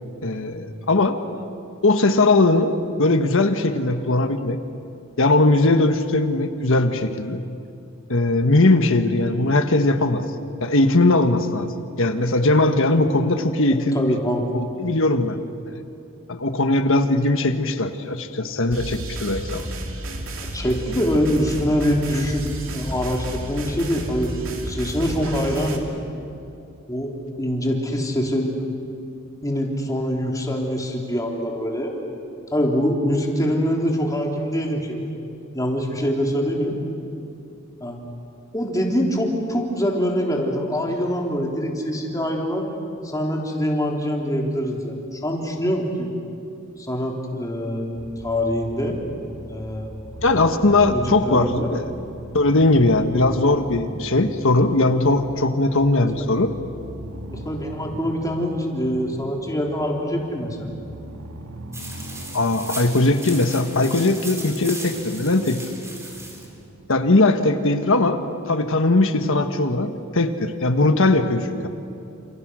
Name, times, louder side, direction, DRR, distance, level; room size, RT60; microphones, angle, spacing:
voice 1, 0.2-1.2 1.8-2.7 3.0-4.6 5.2-7.4 8.1-10.2 10.6-11.7 12.0-14.2 14.5-15.4 15.7-15.8 16.3-19.7 50.2-51.8 52.3-56.5 62.3-65.6 66.9-68.2 68.5-71.7, left 2 dB, 65° left, 8 dB, 1.4 m, -19 dB
voice 2, 13.9-14.5 20.5-22.4 22.7-24.3 24.7-25.9 26.9-27.1 27.4-28.5 29.4-31.9 32.5-35.2 35.5-36.8 37.8-38.0 38.5-42.7 43.0-46.1 46.8-49.0 49.5-49.9 50.9-51.7 56.1-56.2 57.3-60.6, equal, 15° left, 0 dB, 3.6 m, -24 dB
sound 1, 18.7-25.8, right 1 dB, 70° right, 3.0 m, -32 dB
sound 2, 47.9-67.1, right 1 dB, 90° right, 1.9 m, -40 dB
sound 3, 61.7-66.5, right 2 dB, 15° right, 4.3 m, -36 dB
30.0 x 28.0 x 6.3 m, 2.7 s
head